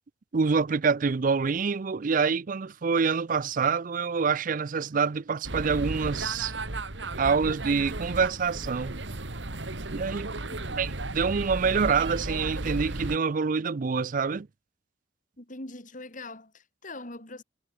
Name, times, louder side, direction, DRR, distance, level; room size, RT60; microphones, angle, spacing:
voice 1, 0.3-6.5 7.2-9.0 9.9-10.3 10.8-14.5, right 5 dB, 45° right, 0.5 m, -26 dB
sound 1, 5.4-13.2, right 2 dB, 75° right, 2.3 m, -34 dB
voice 2, 15.4-17.4, left 2 dB, 45° left, 4.1 m, -42 dB
head